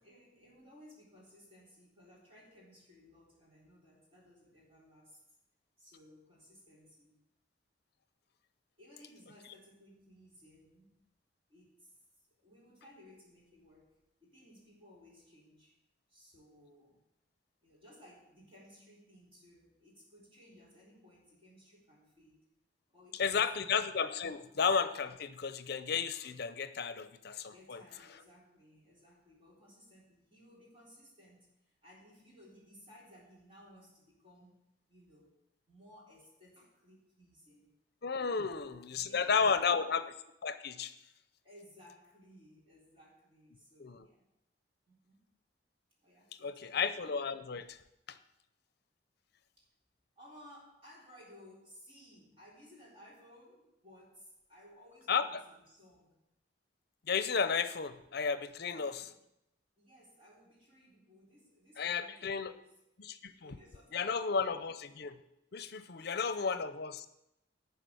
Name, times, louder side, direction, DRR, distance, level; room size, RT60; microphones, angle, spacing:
voice 1, 0.0-5.2 5.8-7.2 8.8-11.0 11.5-12.0 12.3-15.7 16.1-17.0 17.6-22.5 22.9-23.7 27.5-34.6 34.9-35.3 35.7-37.7 38.3-40.0 41.4-44.2 44.9-45.2 46.0-46.8 49.6-49.7 50.2-56.2 58.6-59.2 59.8-62.8 63.3-64.7 66.0-66.7, equal, 30° right, -5 dB, 3.8 m, -59 dB
voice 2, 23.1-27.8 38.0-40.1 40.4-40.9 43.8-44.0 46.4-47.8 48.1-48.2 55.1-55.4 57.1-59.1 61.8-62.5 63.0-63.5 63.9-65.2 65.5-67.0, left 5 dB, 60° left, 12 dB, 0.6 m, -33 dB
11.5 x 4.8 x 8.0 m, 0.85 s
head